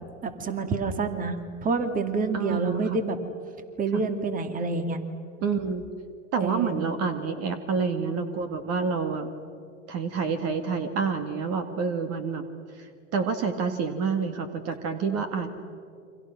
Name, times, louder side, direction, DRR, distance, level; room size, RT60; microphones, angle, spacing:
voice 1, 0.2-3.2 3.8-5.0 6.4-6.8, right 4 dB, 20° right, 8 dB, 2.4 m, -27 dB
voice 2, 2.3-3.0 3.9-4.0 5.4-5.9 6.3-9.3 9.9-12.5 12.8-15.5, right 5 dB, 40° right, 8 dB, 2.2 m, -28 dB
30.0 x 26.0 x 6.1 m, 2.4 s
hypercardioid pair, 110°, 38 cm